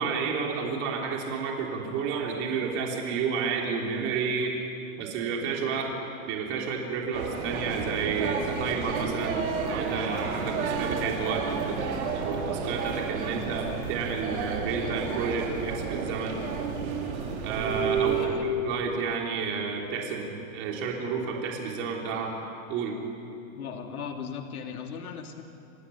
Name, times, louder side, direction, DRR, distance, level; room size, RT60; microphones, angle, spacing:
voice 1, 0.0-4.5 5.0-5.9 6.3-9.3 9.6-16.3 17.4-22.4 22.7-22.9, right 5 dB, 35° right, 0 dB, 3.5 m, -31 dB
sound 1, 7.1-18.3, right 5 dB, 75° right, 5.1 m, -31 dB
voice 2, 18.0-18.6 23.5-25.4, left 7 dB, 90° left, 3 dB, 3.0 m, -37 dB
28.5 x 16.5 x 10.0 m, 2.7 s
supercardioid pair, 160°, 43 cm